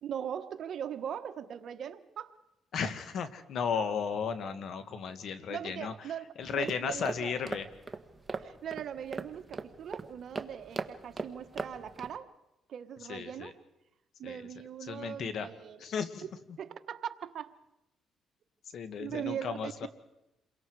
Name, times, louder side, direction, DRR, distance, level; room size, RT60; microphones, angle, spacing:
voice 1, 0.0-2.4 5.5-7.3 8.3-12.3 12.7-13.5 14.2-15.8 16.6-17.5 19.0-19.9, right 9 dB, 65° right, 9 dB, 1.3 m, -40 dB
voice 2, 2.7-5.9 6.4-7.7 13.1-13.5 14.2-14.4 14.8-15.5 15.8-16.3 18.7-19.9, left 6 dB, 65° left, 9 dB, 1.9 m, -35 dB
sound 1, 6.4-12.2, right 3 dB, 20° right, 1.4 m, -40 dB
28.5 x 22.5 x 4.8 m, 0.93 s
cardioid pair, 90°, 0 cm